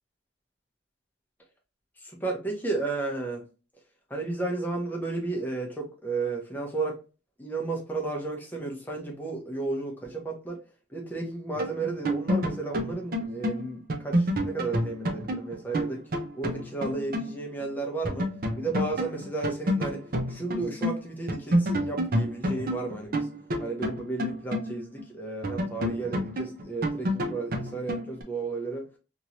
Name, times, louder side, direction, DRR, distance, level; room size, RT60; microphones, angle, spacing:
voice 1, 2.0-3.4 4.1-7.0 7.4-10.6 10.9-16.0 16.3-18.3 18.6-20.0 20.3-23.3 23.6-28.8, right 3 dB, 10° left, 0.8 m, -33 dB
sound 1, 11.6-17.3 17.6-17.7 18.0-21.0 21.3-25.0 25.4-28.2, equal, 45° right, 0.6 m, -29 dB
3.0 x 2.6 x 2.9 m
head